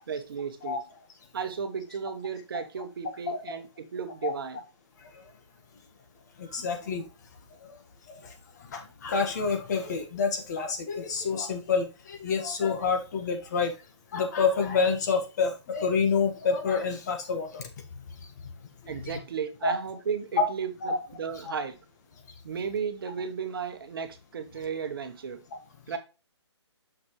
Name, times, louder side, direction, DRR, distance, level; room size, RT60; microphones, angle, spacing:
voice 1, 0.1-0.9 1.3-4.6 18.9-21.8 22.4-25.4 25.9-26.0, right 6 dB, 50° right, 8 dB, 1.1 m, -34 dB
voice 2, 6.5-7.0 8.7-13.7 14.1-17.6 19.6-19.8 20.4-20.5 20.8-21.0, left 5 dB, 35° left, 5 dB, 1.5 m, -27 dB
6.2 x 6.0 x 3.0 m, 0.30 s
hypercardioid pair, 160°, 15 cm